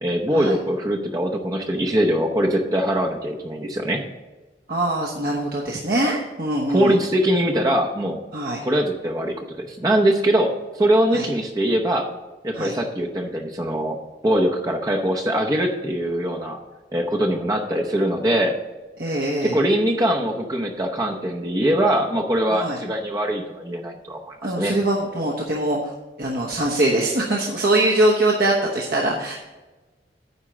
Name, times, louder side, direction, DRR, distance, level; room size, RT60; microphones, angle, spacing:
voice 1, 0.0-4.0 6.7-8.2 8.6-12.1 12.4-14.0 14.2-16.6 16.9-18.5 19.4-24.7, right 1 dB, 20° right, 1 dB, 0.7 m, -22 dB
voice 2, 4.7-6.9 8.3-8.6 11.1-11.2 12.5-12.7 19.0-19.6 22.5-22.8 24.4-29.3, right 1 dB, 55° right, -2 dB, 1.1 m, -22 dB
9.8 x 4.4 x 7.2 m, 1.2 s
head